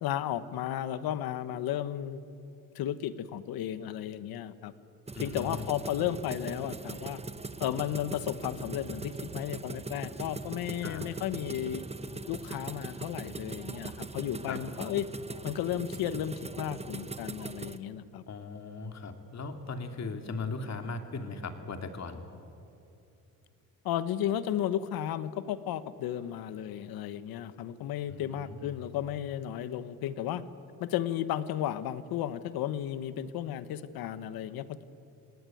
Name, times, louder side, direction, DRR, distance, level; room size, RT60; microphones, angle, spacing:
voice 1, 0.0-2.2 2.7-4.7 5.2-7.2 7.6-11.8 12.3-15.1 15.4-18.2 23.8-30.4 30.8-34.8, left 11 dB, 85° left, 13 dB, 1.3 m, -34 dB
voice 2, 5.1-5.7 10.8-11.0 14.5-14.6 18.3-22.2 28.1-28.6, left 4 dB, 50° left, 6 dB, 2.9 m, -38 dB
sound 1, 5.1-17.8, right 3 dB, 20° right, 1.1 m, -40 dB
28.0 x 19.0 x 9.3 m, 2.7 s
cardioid pair, 90°, 35 cm